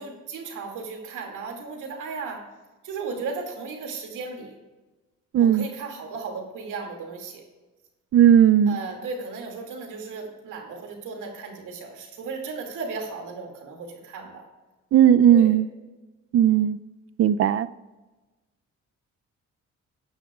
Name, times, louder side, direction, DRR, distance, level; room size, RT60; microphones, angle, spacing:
voice 1, 0.0-2.5 2.8-4.5 5.4-7.4 8.7-14.4 15.3-15.5, right 4 dB, 85° right, 2 dB, 2.4 m, -35 dB
voice 2, 5.3-5.6 8.1-8.8 14.9-15.6 16.3-16.8 17.2-17.7, right 10 dB, 50° right, 15 dB, 0.5 m, -16 dB
15.0 x 9.9 x 2.4 m, 1.2 s
cardioid pair, 90°, 30 cm